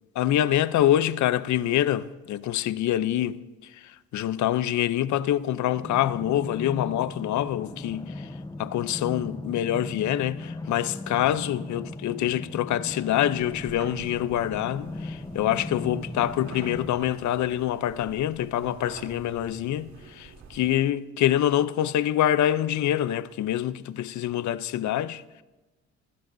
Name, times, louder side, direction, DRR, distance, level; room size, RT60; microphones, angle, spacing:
voice 1, 0.1-8.3 8.6-25.4, left 12 dB, 70° left, 0.6 m, -26 dB
sound 1, 5.8-16.9, left 2 dB, 15° left, 0.9 m, -38 dB
sound 2, 13.3-20.8, right 4 dB, 70° right, 3.0 m, -45 dB
28.0 x 15.5 x 2.6 m
cardioid pair, 90°, 30 cm